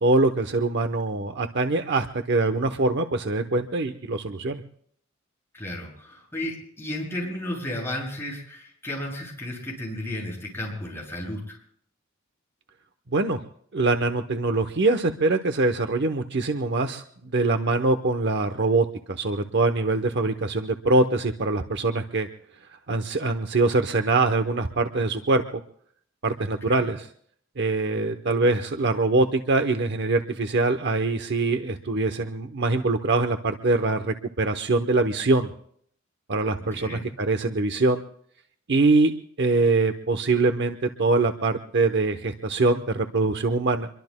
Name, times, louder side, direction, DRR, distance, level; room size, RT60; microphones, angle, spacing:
voice 1, 0.0-4.6 13.1-13.4 13.7-22.3 22.9-25.6 26.2-27.1 27.6-35.5 36.3-38.0 38.7-39.1 39.4-43.9, right 3 dB, 60° right, 7 dB, 0.8 m, -23 dB
voice 2, 5.5-11.6 26.7-26.9 36.7-37.1, left 1 dB, 10° left, -3 dB, 7.4 m, -33 dB
26.5 x 23.0 x 2.2 m, 0.62 s
head